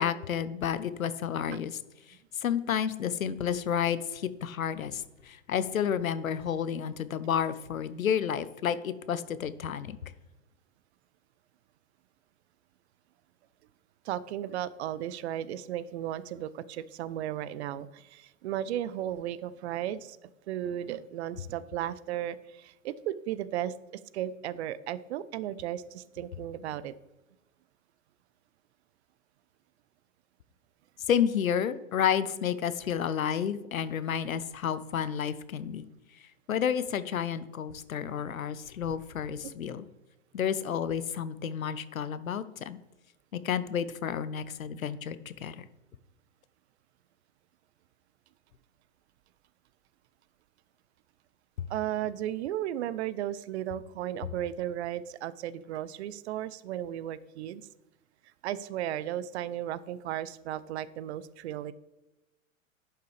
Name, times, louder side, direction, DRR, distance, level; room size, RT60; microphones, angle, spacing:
voice 1, 0.0-1.8 2.3-10.0 31.1-35.9 36.5-39.9 40.3-42.8 43.3-45.7 51.6-51.7, left 8 dB, 90° left, 15 dB, 0.6 m, -31 dB
voice 2, 14.0-20.2 20.5-23.7 24.1-26.9 39.4-39.5 51.7-57.7 58.4-61.7, right 11 dB, 55° right, 18 dB, 0.5 m, -35 dB
10.5 x 5.8 x 3.2 m, 1.0 s
hypercardioid pair, 105°, 40 cm